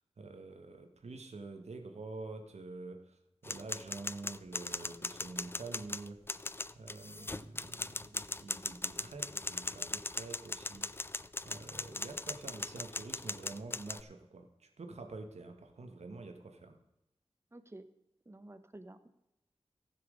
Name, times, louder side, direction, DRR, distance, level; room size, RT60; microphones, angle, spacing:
voice 1, 0.2-6.2 6.7-10.9 11.4-16.8, right 3 dB, 80° right, 6 dB, 1.6 m, -47 dB
sound 1, 3.4-14.0, left 2 dB, 20° left, 0.4 m, -39 dB
voice 2, 17.5-17.8 18.3-19.1, right 1 dB, 25° right, 10 dB, 1.0 m, -51 dB
14.5 x 6.1 x 6.5 m, 0.90 s
wide cardioid pair, 75°, 11 cm